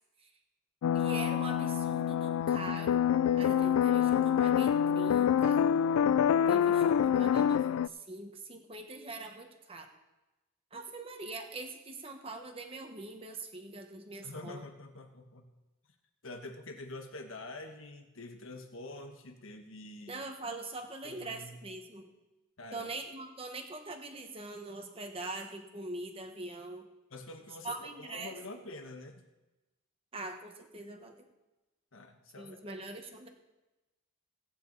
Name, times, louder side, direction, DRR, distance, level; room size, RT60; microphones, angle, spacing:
sound 1, 0.8-7.9, left 8 dB, 85° left, 0.3 m, -26 dB
voice 1, 0.9-3.0 3.4-5.6 6.5-9.9 10.7-14.6 20.1-22.1 22.7-26.9 27.6-28.3 30.1-31.3 32.4-33.3, right 2 dB, 25° right, 4 dB, 1.3 m, -43 dB
voice 2, 14.2-15.4 16.2-20.2 21.0-21.5 22.6-22.9 27.1-29.2 31.9-33.0, left 2 dB, 70° left, 5 dB, 1.4 m, -46 dB
17.0 x 9.2 x 4.0 m, 1.1 s
head